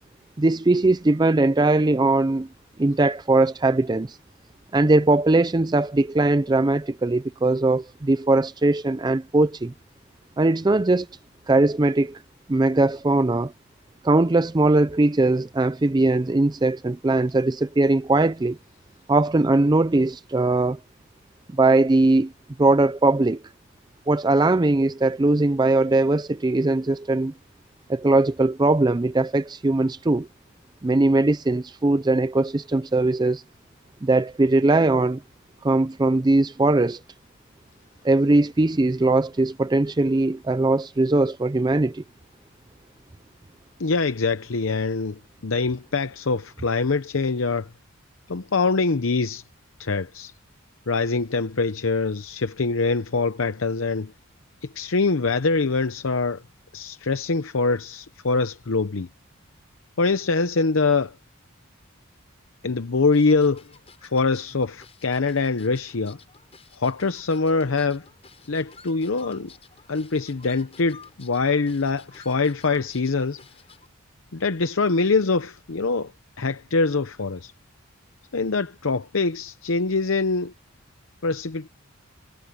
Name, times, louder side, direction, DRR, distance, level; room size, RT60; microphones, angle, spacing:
voice 1, 0.4-2.5 2.8-4.2 4.7-9.7 10.4-11.1 11.5-12.2 12.5-13.5 14.0-18.6 19.1-20.8 21.5-22.3 22.6-23.4 24.1-27.3 27.9-30.3 30.8-33.4 34.0-35.2 35.6-37.0 38.0-42.0, right 2 dB, 20° right, 0.4 m, -20 dB
voice 2, 43.8-47.7 48.3-49.4 49.8-50.3 50.9-54.1 54.6-56.4 56.7-59.1 60.0-61.1 62.6-63.6 64.0-66.2 66.8-68.0 68.5-69.5 69.9-73.4 74.3-76.1 76.4-77.5 78.3-80.5 81.2-81.7, left 4 dB, 65° left, 0.7 m, -24 dB
sound 1, 63.1-73.9, left 5 dB, 30° left, 7.4 m, -51 dB
head